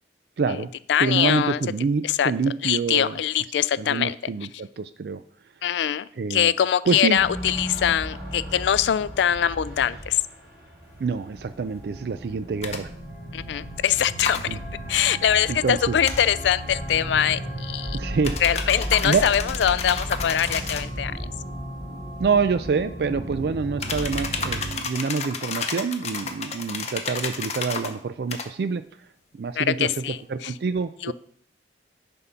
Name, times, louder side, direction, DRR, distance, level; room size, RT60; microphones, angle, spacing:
voice 1, 0.4-0.7 1.0-3.2 3.8-5.2 6.2-6.5 6.9-7.2 11.0-12.9 14.5-14.6 15.5-16.0 17.9-18.4 19.0-19.2 22.2-28.8 29.3-31.1, right 5 dB, 65° right, 11 dB, 0.4 m, -26 dB
voice 2, 0.9-1.6 2.0-2.3 2.6-4.2 5.6-10.2 13.3-14.6 14.9-18.0 18.4-21.1 29.6-30.5 31.0-31.1, left 9 dB, 90° left, 16 dB, 0.3 m, -23 dB
sound 1, 7.1-24.7, equal, 5° right, 2.8 m, -35 dB
sound 2, 12.6-12.8 14.2-14.4 16.0-16.3 18.2-20.9 23.8-27.9 28.3-28.5, left 5 dB, 40° left, 0.8 m, -31 dB
9.6 x 3.7 x 5.5 m, 0.62 s
head